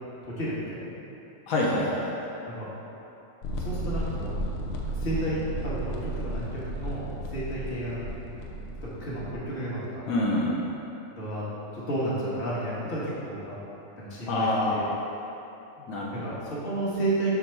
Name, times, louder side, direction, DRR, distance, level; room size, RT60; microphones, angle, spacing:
voice 1, 0.4-0.9 2.5-2.7 3.6-4.4 4.9-8.1 8.7-10.1 11.1-11.4 11.7-13.6 14.0-14.9 16.2-17.3, right 1 dB, 45° left, -8 dB, 1.5 m, -32 dB
voice 2, 1.5-2.3 10.1-10.7 14.3-14.8 15.9-16.3, left 1 dB, 85° left, -5 dB, 1.2 m, -26 dB
sound 1, 3.4-9.3, right 1 dB, 70° left, 1.0 m, -34 dB
6.3 x 3.7 x 4.4 m, 3.0 s
omnidirectional pair, 1.4 m